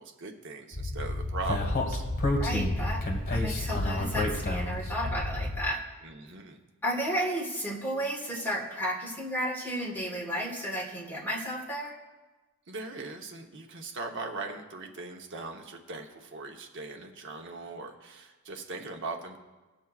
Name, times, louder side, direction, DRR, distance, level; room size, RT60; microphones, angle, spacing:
voice 1, 0.0-2.0 6.0-6.6 12.7-19.4, right 3 dB, 55° right, 2 dB, 0.9 m, -40 dB
Speech, 0.7-5.7, left 1 dB, 45° left, 1.5 m, -30 dB
voice 2, 2.4-3.0 3.3-5.8 6.8-11.9, equal, 10° left, -1 dB, 1.4 m, -33 dB
20.5 x 7.2 x 2.4 m, 1.2 s
head